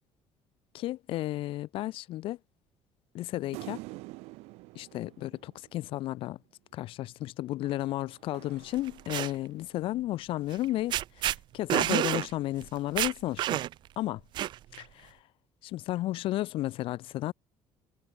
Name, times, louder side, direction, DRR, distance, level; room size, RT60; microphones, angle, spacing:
voice 1, 0.7-2.4 3.1-3.8 4.7-6.4 6.7-13.6 14.0-14.2 14.8-15.2 15.6-17.3, left 15 dB, 60° left, 0.9 m, -33 dB
sound 1, 3.5-6.2 7.7-9.7, right 23 dB, 90° right, 3.3 m, -47 dB
sound 2, 8.8-9.3 10.5-10.6 10.9-11.4 11.7-12.3 12.6-12.7 13.0-13.9 14.3-14.8, right 13 dB, 45° right, 0.5 m, -28 dB
cardioid pair, 155°, 10 cm